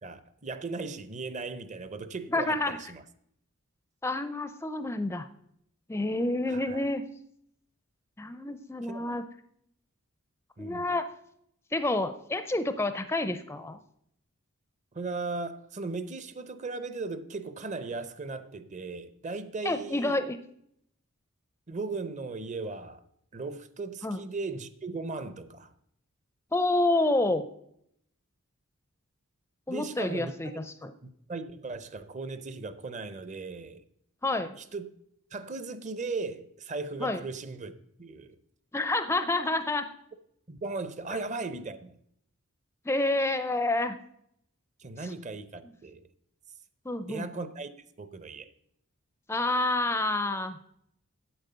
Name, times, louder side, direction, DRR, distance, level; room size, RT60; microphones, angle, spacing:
voice 1, 0.0-3.0 6.5-6.8 8.8-9.1 10.6-10.9 14.9-20.2 21.7-23.0 23.3-25.7 29.7-30.6 31.0-33.8 34.6-34.9 35.3-37.7 38.0-38.4 40.5-42.0 44.8-46.0 47.1-47.7 48.0-48.5, right 3 dB, 35° right, 0.7 m, -37 dB
voice 2, 2.3-2.8 4.0-5.3 5.9-7.0 8.2-9.2 10.6-11.1 11.7-13.8 19.6-20.4 24.0-24.2 26.5-27.4 29.7-30.9 34.2-34.6 37.0-37.2 38.7-39.9 42.9-44.0 46.9-47.3 49.3-50.6, left 2 dB, 10° left, 0.5 m, -28 dB
8.9 x 8.0 x 6.7 m
head